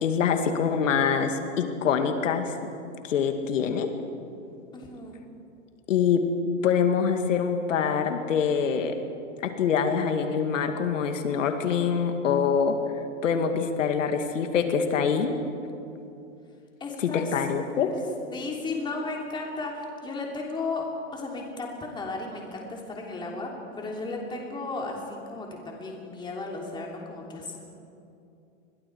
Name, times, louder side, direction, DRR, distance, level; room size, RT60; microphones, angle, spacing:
voice 1, 0.0-2.5 3.0-3.9 5.9-6.2 6.6-8.9 9.6-12.8 13.2-15.3 17.0-17.9, left 6 dB, 75° left, 5 dB, 2.4 m, -25 dB
voice 2, 4.7-5.1 16.8-17.9 18.3-20.8 21.1-23.5 23.8-27.6, left 3 dB, 10° left, -1 dB, 3.3 m, -35 dB
29.5 x 23.0 x 4.8 m, 2.7 s
hypercardioid pair, 150°, 38 cm